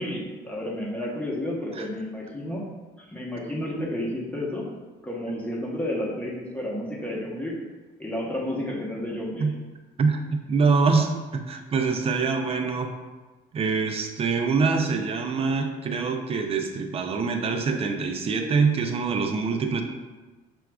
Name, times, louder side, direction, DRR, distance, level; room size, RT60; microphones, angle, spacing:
voice 1, 0.0-2.7 3.0-4.7 5.0-7.5 8.0-9.5, left 1 dB, 10° left, -3 dB, 0.8 m, -31 dB
voice 2, 10.0-12.9 13.5-19.8, right 4 dB, 35° right, 5 dB, 0.4 m, -24 dB
5.9 x 2.3 x 2.2 m, 1.2 s
cardioid pair, 110°, 17 cm